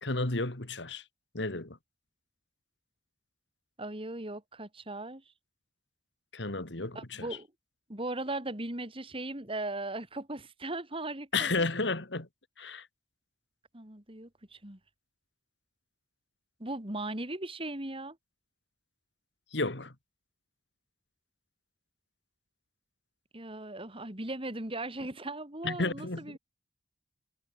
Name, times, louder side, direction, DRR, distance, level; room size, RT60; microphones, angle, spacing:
voice 1, 0.0-1.0 1.3-1.8 6.3-7.3 11.3-12.3 12.6-12.9 19.5-19.9 25.6-26.4, left 3 dB, 75° left, 2.6 m, -32 dB
voice 2, 3.8-5.2 6.9-7.5 7.9-11.7 12.7-12.8 13.7-14.8 16.6-18.2 23.3-26.4, right 2 dB, 30° right, 3.6 m, -38 dB
head